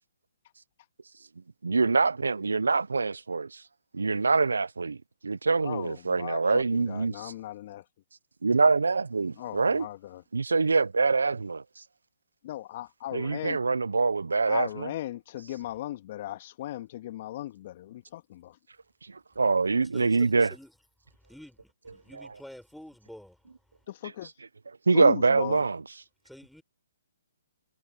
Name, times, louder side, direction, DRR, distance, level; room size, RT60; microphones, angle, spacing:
voice 1, 1.6-3.7 3.9-7.3 8.4-9.9 10.3-11.9 13.1-14.9 15.4-15.6 19.0-20.5 24.0-24.5 24.8-26.0, right 4 dB, 80° right, 0.9 m, -25 dB
voice 2, 5.6-7.8 9.4-10.2 12.4-13.6 14.5-18.5 23.9-24.3 24.9-25.6, left 14 dB, 45° left, 2.0 m, -37 dB
voice 3, 19.8-20.7 21.1-23.5 26.2-26.6, equal, ahead, 5.0 m, -49 dB
figure-of-eight pair, 135°, 0 cm